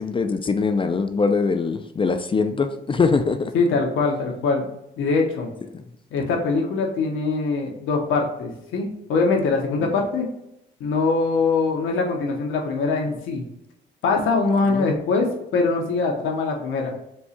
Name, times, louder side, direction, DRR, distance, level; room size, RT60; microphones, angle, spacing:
voice 1, 0.0-3.5 5.7-5.8 14.7-14.9, left 4 dB, 25° left, 8 dB, 0.4 m, -22 dB
voice 2, 3.5-4.7 5.0-5.5 6.1-10.3 10.8-13.4 14.0-16.9, left 4 dB, 85° left, 1 dB, 1.0 m, -22 dB
4.4 x 2.4 x 4.2 m, 0.81 s
cardioid pair, 90°, 20 cm